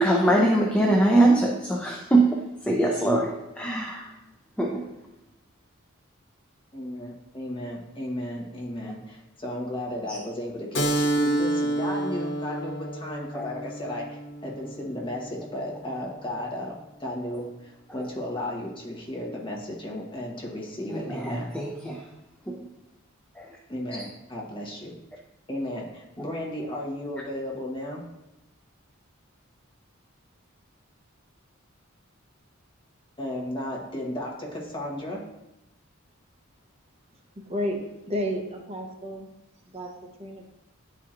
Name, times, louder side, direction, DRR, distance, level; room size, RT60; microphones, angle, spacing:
voice 1, 0.0-4.1 4.6-4.9 10.1-10.2 11.9-12.0 13.3-13.5 18.0-18.1 20.9-22.1 22.5-22.7 23.4-23.6 24.0-24.1, right 1 dB, 5° left, 0 dB, 0.4 m, -23 dB
voice 2, 6.7-21.5 23.7-24.9 25.5-28.0 33.2-35.2, left 1 dB, 25° left, -3 dB, 1.2 m, -34 dB
Keyboard (musical), 10.7-15.9, right 1 dB, 60° left, 0.9 m, -29 dB
voice 3, 37.5-37.8 38.1-39.3 39.7-39.9 40.2-40.4, equal, 30° right, 1 dB, 0.7 m, -31 dB
10.0 x 4.3 x 2.5 m, 0.93 s
head